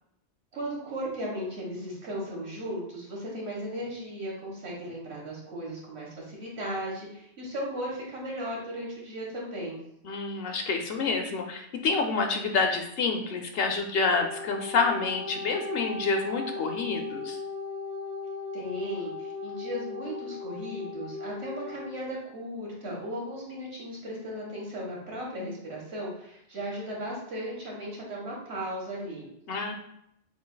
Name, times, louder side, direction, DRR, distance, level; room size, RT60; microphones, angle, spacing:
voice 1, 0.5-9.8 18.5-29.3, equal, 65° right, -4 dB, 1.7 m, -36 dB
voice 2, 10.0-17.4 29.5-29.7, left 4 dB, 65° left, 5 dB, 0.8 m, -28 dB
Wind instrument woodwind instrument, 14.0-22.0, left 3 dB, 45° right, 1.4 m, -37 dB
7.1 x 2.7 x 2.2 m, 0.75 s
omnidirectional pair, 1.2 m